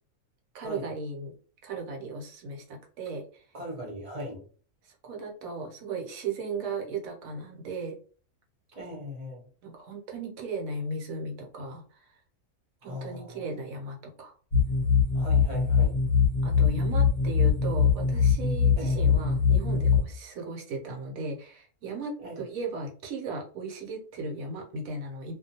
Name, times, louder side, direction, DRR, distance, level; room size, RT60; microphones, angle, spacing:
voice 1, 0.5-1.3 1.6-3.5 4.8-7.9 9.6-12.2 12.8-14.4 16.4-25.3, right 3 dB, 70° right, 0 dB, 1.1 m, -36 dB
voice 2, 3.5-4.4 8.7-9.4 12.9-13.4 15.1-16.0 18.7-19.1 22.2-22.4, equal, 35° right, -2 dB, 0.7 m, -39 dB
sound 1, 14.5-20.0, left 6 dB, 45° left, 0.8 m, -23 dB
2.4 x 2.2 x 2.7 m, 0.42 s
omnidirectional pair, 1.5 m